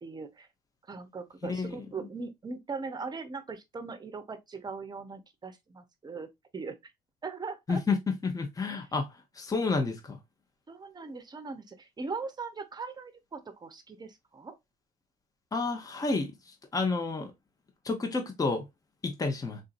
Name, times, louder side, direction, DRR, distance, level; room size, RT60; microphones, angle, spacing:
voice 1, 0.0-0.5 0.9-6.3 6.5-6.7 7.2-7.8 8.7-8.9 10.7-14.6, right 4 dB, 25° right, 0.8 m, -40 dB
voice 2, 1.4-1.8 7.7-8.0 8.2-9.1 9.4-10.2 15.5-16.3 16.7-17.3 17.8-18.7 19.0-19.6, left 4 dB, 20° left, 0.9 m, -30 dB
3.8 x 2.7 x 2.5 m
cardioid pair, 110°, 17 cm